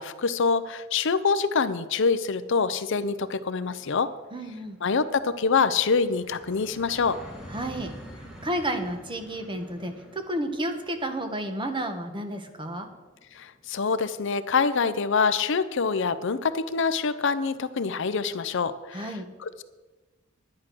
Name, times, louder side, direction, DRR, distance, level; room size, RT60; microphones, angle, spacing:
voice 1, 0.0-4.1 4.8-7.2 13.3-19.6, left 5 dB, 65° left, 13 dB, 0.6 m, -25 dB
sound 1, 2.8-14.0, equal, 5° right, 1.9 m, -48 dB
voice 2, 4.3-4.8 7.5-7.9 8.4-12.9 18.9-19.3, right 1 dB, 25° right, 7 dB, 1.2 m, -31 dB
10.5 x 9.7 x 6.1 m, 1.2 s
head